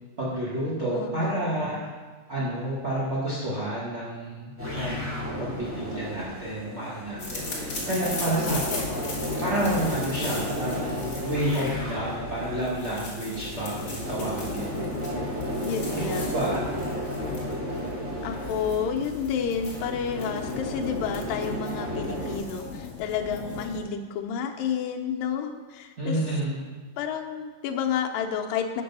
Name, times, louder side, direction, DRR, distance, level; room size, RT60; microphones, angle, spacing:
voice 1, 0.2-1.8 2.3-8.8 9.4-14.8 16.3-16.6 26.0-26.6, right 1 dB, 80° right, -7 dB, 0.6 m, -30 dB
voice 2, 0.9-1.6 8.7-9.2 15.6-16.3 18.2-26.2 27.0-28.8, left 7 dB, 80° left, 3 dB, 2.4 m, -30 dB
sound 1, 4.6-22.4, equal, 5° right, 1.5 m, -33 dB
sound 2, 7.2-23.8, left 4 dB, 40° left, 1.4 m, -38 dB
8.4 x 6.1 x 5.4 m, 1.4 s
omnidirectional pair, 4.0 m